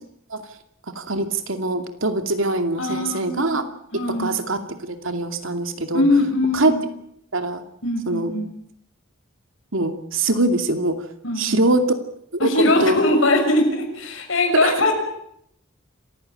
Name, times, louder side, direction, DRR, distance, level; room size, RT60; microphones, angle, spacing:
voice 1, 0.9-3.6 4.1-6.1 6.5-6.7 7.3-7.6 8.1-8.3 9.7-11.0 11.4-11.9 12.4-13.0 14.5-14.7, right 2 dB, 80° right, 7 dB, 2.5 m, -23 dB
voice 2, 2.8-3.6 3.9-4.4 5.9-6.8 7.8-8.5 11.2-11.6 12.4-14.9, left 2 dB, 75° left, 4 dB, 6.4 m, -21 dB
27.0 x 15.5 x 9.0 m, 0.74 s
head